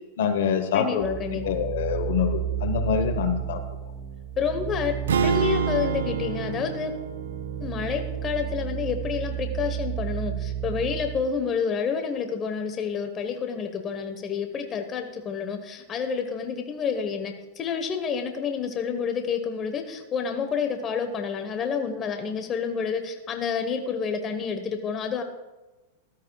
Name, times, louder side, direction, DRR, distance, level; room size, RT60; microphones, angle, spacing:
voice 1, 0.2-1.1 1.4-3.6, left 7 dB, 75° left, 8 dB, 1.2 m, -25 dB
voice 2, 0.7-1.6 3.0-3.1 4.4-4.9 5.2-6.9 7.6-25.2, left 6 dB, 30° left, 6 dB, 1.2 m, -29 dB
sound 1, 1.0-11.2, right 10 dB, 15° right, 2.4 m, -32 dB
sound 2, 5.1-9.2, right 6 dB, 90° right, 0.7 m, -29 dB
14.0 x 13.0 x 2.4 m, 1.1 s
hypercardioid pair, 125°, 0 cm